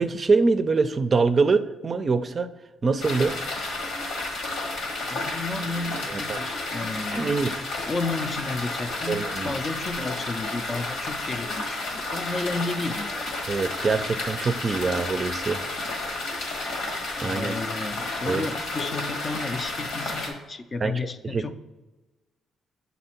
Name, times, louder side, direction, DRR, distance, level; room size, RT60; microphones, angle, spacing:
voice 1, 0.0-2.5 2.8-3.4 6.1-6.4 7.1-7.6 9.1-9.5 13.5-15.6 17.2-17.6 18.3-18.5 20.8-20.9 21.2-21.4, right 4 dB, 35° right, 10 dB, 0.4 m, -24 dB
sound 1, 3.0-20.3, left 2 dB, 90° left, 1.5 m, -31 dB
voice 2, 5.1-7.4 7.8-13.3 17.2-21.5, left 3 dB, 35° left, 9 dB, 0.4 m, -32 dB
6.7 x 4.1 x 4.3 m, 1.1 s
cardioid pair, 90°, 0 cm